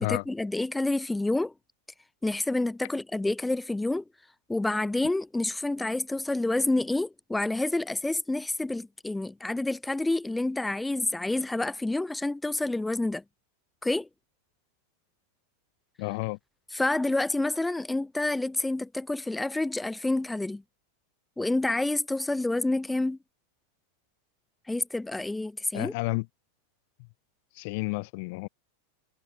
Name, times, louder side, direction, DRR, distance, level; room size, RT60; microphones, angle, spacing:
voice 1, 0.1-1.5 2.2-4.0 4.5-13.2 13.8-14.1 16.7-20.6 21.4-23.2 24.7-25.9, left 2 dB, 5° left, 0.7 m, -28 dB
voice 2, 16.0-16.4 25.7-26.3 27.5-28.5, left 28 dB, 45° left, 0.5 m, -31 dB
figure-of-eight pair, 90°, 0 cm